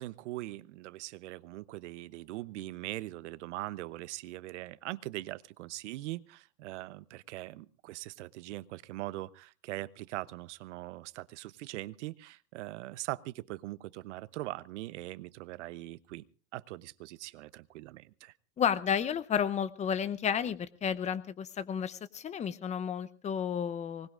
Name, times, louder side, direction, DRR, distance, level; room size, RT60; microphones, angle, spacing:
voice 1, 0.0-16.2 16.5-18.3, right 17 dB, 60° right, 19 dB, 0.9 m, -41 dB
voice 2, 18.6-24.1, left 8 dB, 15° left, 14 dB, 0.8 m, -32 dB
24.5 x 19.5 x 2.5 m, 0.38 s
hypercardioid pair, 120°, 40 cm